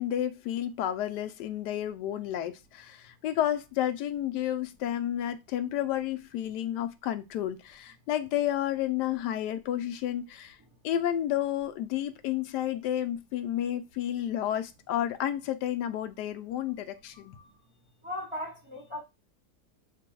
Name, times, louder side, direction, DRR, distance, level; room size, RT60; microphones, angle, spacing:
voice 1, 0.0-10.6 10.8-17.4, left 11 dB, 90° left, 1.2 m, -31 dB
voice 2, 17.1-17.5 18.0-19.0, left 1 dB, 20° right, 1.0 m, -38 dB
7.4 x 2.7 x 2.3 m
omnidirectional pair, 1.8 m